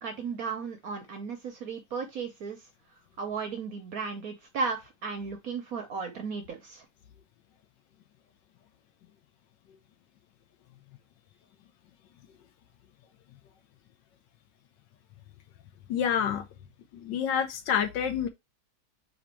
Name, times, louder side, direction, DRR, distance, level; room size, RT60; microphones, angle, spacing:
voice 1, 0.0-2.6 3.2-6.8, right 5 dB, 60° right, 0.9 m, -35 dB
voice 2, 15.9-16.5 16.9-18.3, left 8 dB, 70° left, 1.3 m, -28 dB
4.3 x 2.9 x 4.3 m
omnidirectional pair, 2.2 m